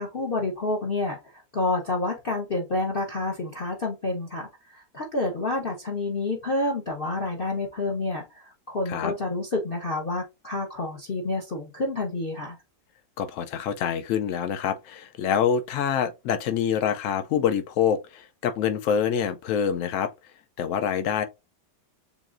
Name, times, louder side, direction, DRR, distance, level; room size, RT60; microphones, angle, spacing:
voice 1, 0.0-12.6, left 2 dB, 40° left, 0.8 m, -29 dB
voice 2, 13.2-20.1 20.6-21.2, left 8 dB, 80° left, 0.7 m, -26 dB
7.1 x 2.6 x 2.5 m
omnidirectional pair, 1.9 m